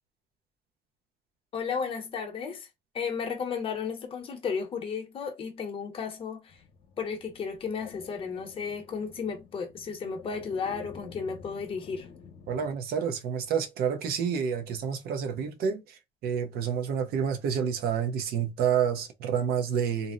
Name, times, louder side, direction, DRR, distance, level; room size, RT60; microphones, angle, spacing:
voice 1, 1.5-2.7 2.9-6.5 7.0-12.1, left 6 dB, 35° left, 0.8 m, -34 dB
sound 1, 6.5-12.8, left 6 dB, 65° left, 0.8 m, -50 dB
voice 2, 12.5-20.1, right 7 dB, 75° right, 0.6 m, -29 dB
2.5 x 2.0 x 3.6 m
cardioid pair, 150°, 16 cm